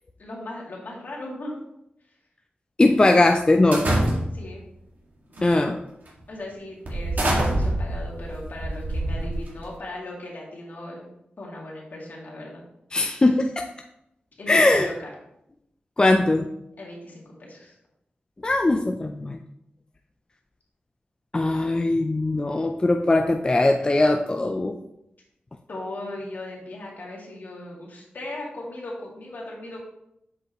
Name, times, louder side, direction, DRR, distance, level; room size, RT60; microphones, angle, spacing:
voice 1, 0.2-1.5 4.3-4.6 6.3-11.1 11.4-12.6 14.4-15.1 16.8-17.8 25.7-29.8, left 1 dB, 65° left, -3 dB, 2.3 m, -37 dB
voice 2, 2.8-3.9 5.4-5.8 12.9-13.7 14.5-14.9 16.0-16.5 18.4-19.4 21.3-24.8, left 2 dB, 25° left, 4 dB, 0.5 m, -20 dB
sound 1, 3.7-4.5 5.3-5.6 6.1-6.2 6.9-9.8, right 1 dB, 60° right, 2.0 m, -26 dB
7.8 x 5.5 x 3.0 m, 0.80 s
wide cardioid pair, 85°, 3 cm